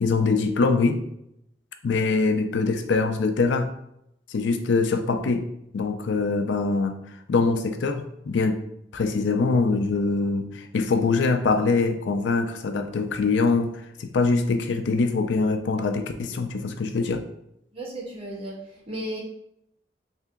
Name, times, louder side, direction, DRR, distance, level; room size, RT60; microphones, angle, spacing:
voice 1, 0.0-1.0 1.8-3.7 4.3-5.5 5.7-7.0 7.3-8.6 8.9-17.2, left 4 dB, 85° left, 7 dB, 0.4 m, -23 dB
voice 2, 17.7-18.6 18.9-19.2, right 1 dB, 35° right, -5 dB, 1.2 m, -34 dB
3.2 x 2.8 x 3.6 m, 0.78 s
head